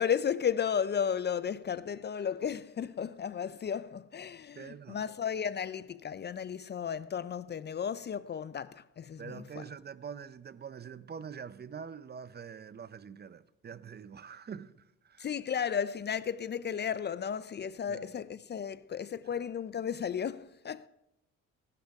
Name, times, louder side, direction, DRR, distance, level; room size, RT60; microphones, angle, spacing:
voice 1, 0.0-9.6 15.2-20.9, left 7 dB, 35° left, 0.4 m, -34 dB
voice 2, 4.5-5.1 9.2-15.3 17.9-18.1, right 7 dB, 35° right, 0.6 m, -45 dB
16.5 x 11.5 x 3.5 m
cardioid pair, 90°, 30 cm